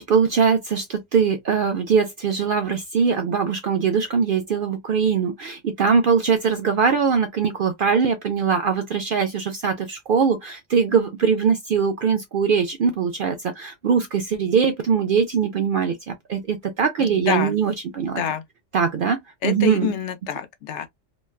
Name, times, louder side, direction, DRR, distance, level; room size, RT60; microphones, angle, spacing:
voice 1, 0.0-18.2 18.7-19.9, right 6 dB, 60° right, 0.5 m, -21 dB
voice 2, 17.0-17.5 18.0-18.4 19.4-20.9, left 9 dB, 70° left, 0.8 m, -27 dB
3.1 x 2.2 x 2.2 m
omnidirectional pair, 1.3 m